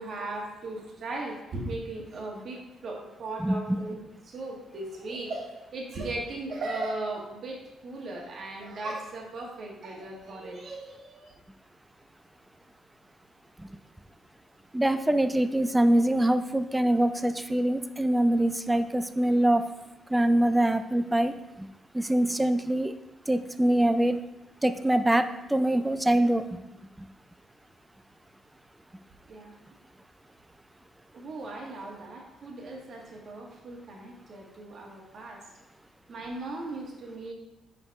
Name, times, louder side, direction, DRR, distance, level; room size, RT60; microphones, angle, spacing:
voice 1, 0.0-11.3 29.3-29.5 31.1-35.4 36.1-37.3, right 2 dB, 55° right, -1 dB, 1.6 m, -37 dB
voice 2, 3.4-3.8 13.6-13.7 14.7-19.7 20.1-21.7 21.9-23.0 23.3-24.2 24.6-26.5 27.0-27.1, right 1 dB, 10° right, 10 dB, 0.4 m, -24 dB
5.3 x 5.2 x 4.7 m, 0.99 s
cardioid pair, 90°, 0 cm